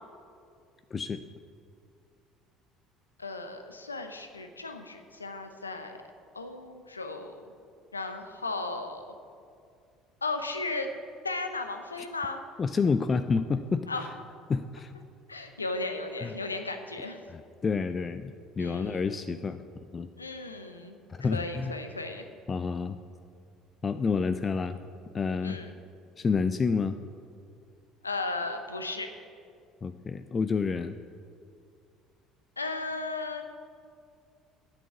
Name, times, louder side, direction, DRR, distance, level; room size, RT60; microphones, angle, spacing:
voice 1, 0.9-1.2 12.6-14.1 14.5-14.9 16.2-16.3 17.3-19.6 19.9-20.1 21.1-21.7 22.5-23.0 23.8-24.8 25.1-25.6 26.2-27.0 29.8-31.0, left 5 dB, 30° left, 10 dB, 0.4 m, -29 dB
voice 2, 3.2-6.0 6.3-7.5 7.9-9.1 10.2-10.9 11.2-12.4 13.9-14.1 15.3-17.2 18.6-19.0 19.3-19.4 20.2-22.2 25.4-25.7 28.0-29.1 32.6-33.5, left 3 dB, 90° left, 6 dB, 0.7 m, -35 dB
8.6 x 6.5 x 8.5 m, 2.3 s
figure-of-eight pair, 60°, 0 cm